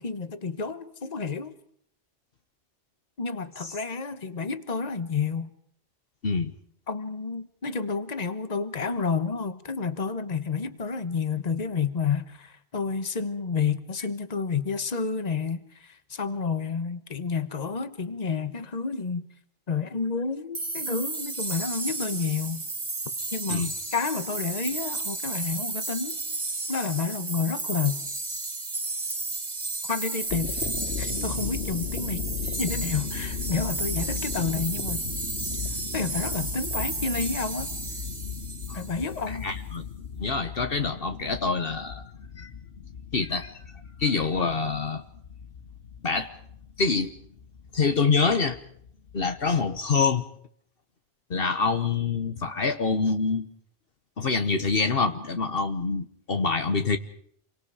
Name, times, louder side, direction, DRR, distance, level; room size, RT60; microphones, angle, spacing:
voice 1, 0.0-1.6 3.2-5.5 6.9-19.3 19.7-22.7 23.3-23.7 23.9-26.2 26.7-28.0 29.8-30.7 31.0-35.0 35.9-37.7 38.7-39.6, left 5 dB, 40° left, 12 dB, 1.3 m, -30 dB
sound 1, 20.5-39.2, right 3 dB, 30° right, 1.3 m, -33 dB
sound 2, 30.1-49.8, left 7 dB, 90° left, 1.5 m, -37 dB
voice 2, 39.3-39.9 40.2-42.0 42.4-42.5 43.1-43.6 44.0-45.0 46.0-46.3 46.8-47.1 47.7-48.6 49.1-50.2 51.3-53.5 54.2-57.0, left 4 dB, 65° left, 8 dB, 1.4 m, -26 dB
28.0 x 24.0 x 5.0 m, 0.65 s
omnidirectional pair, 1.1 m